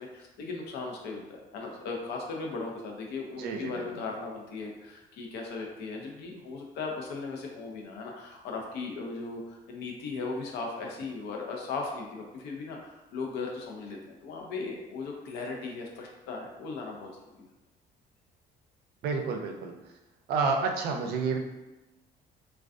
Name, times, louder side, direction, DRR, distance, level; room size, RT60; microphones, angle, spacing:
voice 1, 0.0-17.5, left 4 dB, 80° left, 1 dB, 0.5 m, -37 dB
voice 2, 3.4-3.9 19.0-19.7 20.3-21.4, right 4 dB, 70° right, 4 dB, 0.4 m, -29 dB
2.3 x 2.2 x 2.4 m, 1.0 s
cardioid pair, 110°, 17 cm